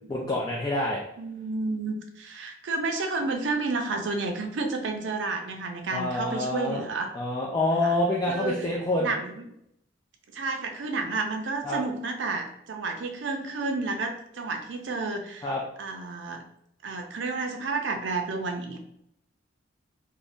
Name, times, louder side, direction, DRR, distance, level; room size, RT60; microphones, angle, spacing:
voice 1, 0.1-1.0 5.9-6.8 7.1-9.1 11.6-11.8 15.4-15.6, left 1 dB, 20° left, -3 dB, 0.3 m, -27 dB
voice 2, 1.2-7.1 7.8-8.0 8.3-8.7 9.0-9.3 10.3-15.5 15.8-16.4 16.8-18.8, right 3 dB, 75° right, 5 dB, 0.5 m, -31 dB
3.5 x 2.0 x 2.5 m, 0.76 s
head